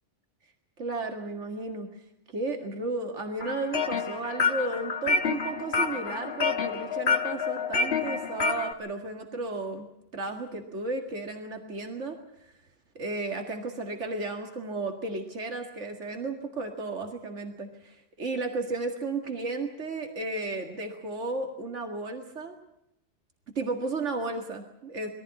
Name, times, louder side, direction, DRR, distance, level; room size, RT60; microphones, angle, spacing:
voice 1, 0.8-2.0 2.3-9.9 10.1-12.2 12.4-12.5 13.0-22.5 23.6-25.1, right 3 dB, 90° right, 4 dB, 2.3 m, -34 dB
sound 1, 3.4-8.7, left 5 dB, 60° left, 1.6 m, -28 dB
21.5 x 15.5 x 9.6 m, 0.78 s
omnidirectional pair, 1.2 m